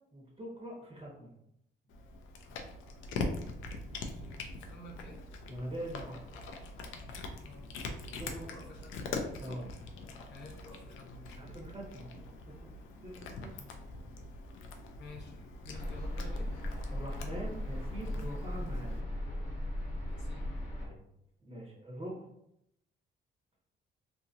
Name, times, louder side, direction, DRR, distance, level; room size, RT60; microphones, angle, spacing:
voice 1, 0.1-1.4 5.5-6.4 8.1-8.5 9.4-9.7 11.3-12.1 12.4-12.7 13.0-13.7 16.9-19.0 20.8-21.0 21.4-22.2, right 1 dB, 30° right, -3 dB, 1.3 m, -43 dB
Cat, 1.9-19.0, left 3 dB, 90° left, 0.5 m, -43 dB
voice 2, 4.0-5.2 7.4-7.7 8.3-9.0 10.3-11.6 15.0-16.5 20.1-20.5, left 2 dB, 60° left, -1 dB, 0.9 m, -52 dB
sound 1, 15.7-20.9, left 1 dB, 40° left, 1.0 m, -37 dB
2.8 x 2.8 x 2.5 m, 0.77 s
cardioid pair, 90°, 20 cm